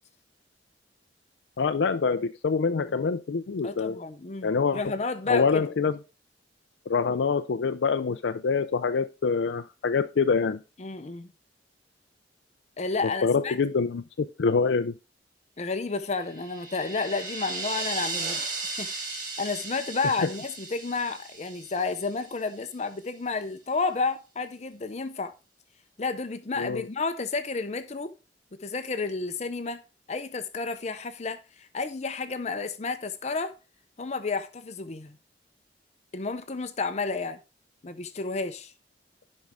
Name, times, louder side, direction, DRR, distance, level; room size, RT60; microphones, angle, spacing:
voice 1, 1.6-4.0 4.4-4.8 5.3-6.0 6.9-10.6 13.2-14.9 26.6-26.8, left 5 dB, 85° left, 0.5 m, -25 dB
voice 2, 3.6-5.7 10.8-11.3 12.8-13.6 15.6-25.3 26.0-28.1 28.5-33.6 34.0-35.2 36.1-37.4 37.8-38.7, left 4 dB, 40° left, 0.7 m, -31 dB
sound 1, 16.2-22.4, right 3 dB, 45° right, 2.4 m, -36 dB
10.5 x 5.5 x 3.6 m
head